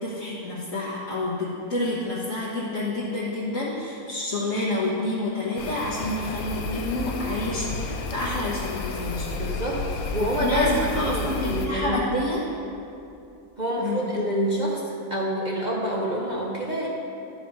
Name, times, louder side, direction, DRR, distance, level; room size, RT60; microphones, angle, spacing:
voice 1, 0.0-9.3 10.2-12.4 13.8-14.0, left 2 dB, 65° left, -8 dB, 1.6 m, -28 dB
sound 1, 5.6-11.7, left 4 dB, 85° left, 1.2 m, -31 dB
voice 2, 9.4-10.7 10.9-12.2 13.6-16.9, right 1 dB, 35° right, -5 dB, 0.9 m, -27 dB
11.0 x 5.0 x 5.4 m, 2.6 s
omnidirectional pair, 1.5 m